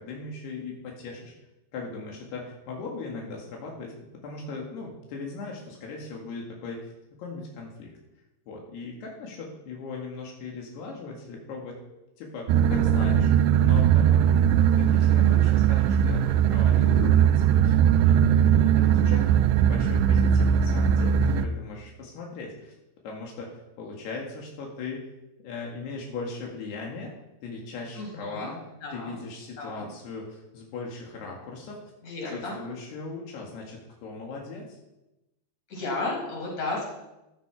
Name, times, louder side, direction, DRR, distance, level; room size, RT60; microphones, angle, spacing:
voice 1, 0.0-1.3 1.7-6.9 7.2-7.9 8.5-11.8 12.2-13.3 13.6-14.3 14.8-18.5 18.7-22.7 23.0-25.1 25.4-27.1 27.4-28.6 28.9-31.8 32.3-34.8, left 4 dB, 80° left, -1 dB, 4.0 m, -38 dB
sound 1, 12.5-21.5, right 9 dB, 90° right, 2.7 m, -20 dB
voice 2, 28.0-28.5 28.8-29.2 29.6-29.9 32.0-32.6 35.7-36.9, left 2 dB, 40° left, -3 dB, 6.1 m, -33 dB
15.0 x 12.5 x 4.8 m, 0.96 s
omnidirectional pair, 4.7 m